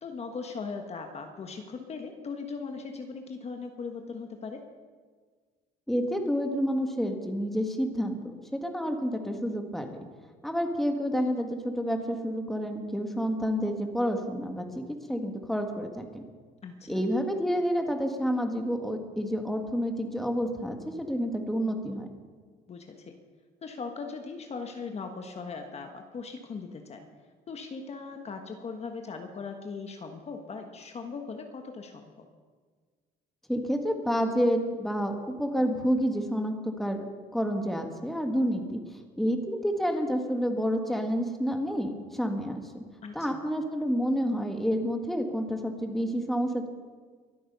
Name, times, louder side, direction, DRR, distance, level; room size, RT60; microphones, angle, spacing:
voice 1, 0.0-4.7 16.6-17.0 22.7-23.2 23.6-27.0 27.5-32.3 43.0-43.4, left 4 dB, 40° left, 5 dB, 1.4 m, -39 dB
voice 2, 5.9-8.2 8.5-10.0 10.4-16.2 16.9-22.1 33.5-37.0 37.3-38.8 39.2-42.6 43.1-46.7, equal, ahead, 4 dB, 1.7 m, -29 dB
22.5 x 8.6 x 5.5 m, 1.5 s
cardioid pair, 110°, 17 cm